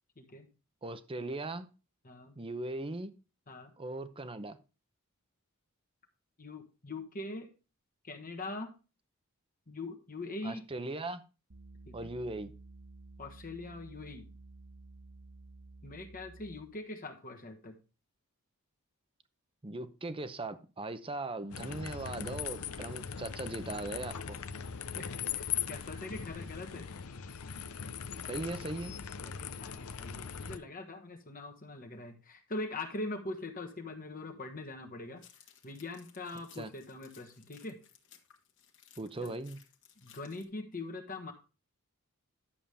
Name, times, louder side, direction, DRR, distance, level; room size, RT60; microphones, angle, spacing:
voice 1, 0.2-0.5 2.0-2.4 3.5-3.7 6.4-7.5 8.0-8.7 9.7-10.6 11.9-12.1 13.2-14.3 15.8-17.8 24.9-26.9 29.2-35.2 35.6-37.8 39.2-39.4 40.0-41.3, left 2 dB, 40° left, 1.3 m, -42 dB
voice 2, 0.8-1.7 2.4-3.1 3.8-4.6 10.4-11.2 11.9-12.5 19.6-24.4 28.3-29.0 36.6-36.7 39.0-39.6, right 2 dB, 25° right, 0.7 m, -39 dB
sound 1, 11.5-16.8, right 3 dB, 80° right, 1.2 m, -53 dB
sound 2, 21.5-30.6, left 8 dB, 80° left, 0.7 m, -40 dB
sound 3, 35.2-40.4, left 9 dB, 60° left, 1.6 m, -60 dB
11.0 x 7.1 x 3.4 m
head